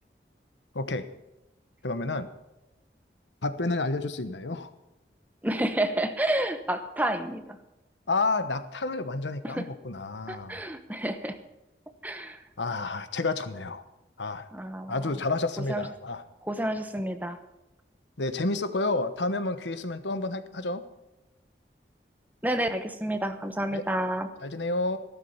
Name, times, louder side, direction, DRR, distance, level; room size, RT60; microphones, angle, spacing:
voice 1, 0.7-1.1 1.8-2.3 3.4-4.7 8.1-10.6 12.6-13.8 14.2-14.5 14.9-16.2 18.2-20.8 23.7-23.8 24.4-25.0, left 2 dB, 90° left, 11 dB, 1.1 m, -30 dB
voice 2, 5.4-7.4 9.4-9.7 10.3-11.4 12.0-12.4 14.5-15.0 15.7-15.8 16.5-17.4 22.4-24.3, right 1 dB, 10° right, 8 dB, 1.0 m, -29 dB
14.5 x 12.5 x 5.7 m, 0.96 s
head